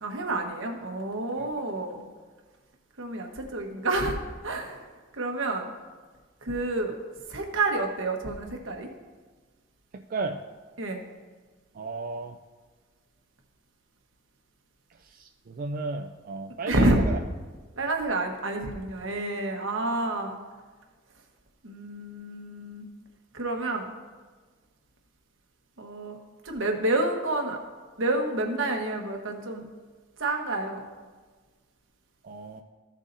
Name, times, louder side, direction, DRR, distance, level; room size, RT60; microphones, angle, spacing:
voice 1, 0.0-2.0 3.0-4.2 4.4-4.8 5.1-5.7 6.4-6.9 7.3-8.9 10.8-11.0 16.7-17.0 17.8-20.4 21.6-22.9 23.3-23.9 25.8-26.2 26.4-27.6 28.0-29.6 30.2-30.9, right 2 dB, 80° right, 3 dB, 1.2 m, -29 dB
voice 2, 9.9-10.4 11.7-12.4 14.9-17.2 32.2-32.6, right 3 dB, 45° right, 5 dB, 0.4 m, -34 dB
14.5 x 7.3 x 2.6 m, 1.4 s
head